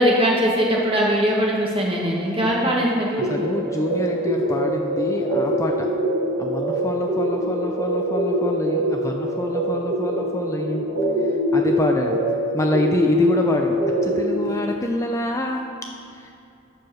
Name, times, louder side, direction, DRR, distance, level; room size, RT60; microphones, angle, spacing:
voice 1, 0.0-3.3, equal, 25° right, -3 dB, 1.8 m, -20 dB
voice 2, 3.1-5.9 6.4-10.8 11.2-12.2 12.5-15.6 16.1-16.3, left 1 dB, 15° left, 2 dB, 0.4 m, -26 dB
sound 1, 3.2-14.5, equal, 40° right, 1.7 m, -24 dB
13.0 x 4.7 x 6.3 m, 2.6 s
head